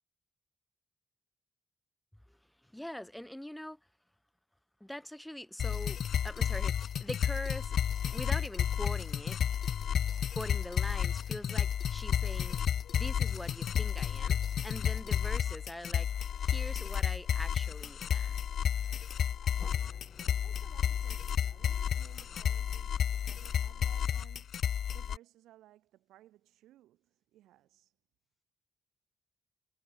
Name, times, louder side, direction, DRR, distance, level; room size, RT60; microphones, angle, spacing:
voice 1, 2.6-3.8 4.8-7.8 8.1-9.4 10.3-12.6 12.9-16.1 16.4-18.4, left 1 dB, 5° left, 1.2 m, -43 dB
sound 1, 5.6-25.2, left 9 dB, 70° left, 0.3 m, -32 dB
sound 2, 6.9-24.2, left 14 dB, 85° left, 2.5 m, -65 dB
sound 3, 19.6-24.4, left 4 dB, 40° left, 4.1 m, -58 dB
voice 2, 20.4-27.9, right 14 dB, 85° right, 5.6 m, -60 dB
supercardioid pair, 55°, 0 cm